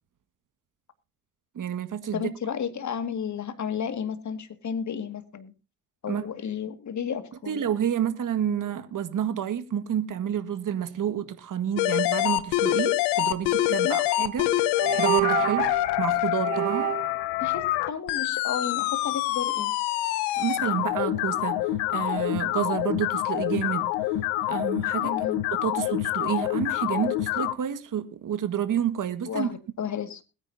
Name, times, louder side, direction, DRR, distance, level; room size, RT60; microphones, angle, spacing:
voice 1, 1.6-2.3 6.1-6.2 7.5-14.5 14.8-15.7 16.0-16.9 20.3-21.6 21.9-23.9 24.5-25.1 25.5-29.5, right 9 dB, 50° right, 1.8 m, -29 dB
voice 2, 2.1-5.5 6.0-7.6 13.8-14.0 17.4-19.7 25.0-25.4 29.3-30.2, left 7 dB, 45° left, 2.1 m, -32 dB
sound 1, 11.8-27.5, left 15 dB, 85° left, 1.0 m, -26 dB
sound 2, 14.1-14.3 14.8-15.9 16.4-17.2, right 15 dB, 75° right, 1.7 m, -28 dB
21.0 x 9.7 x 2.7 m
supercardioid pair, 60°, 40 cm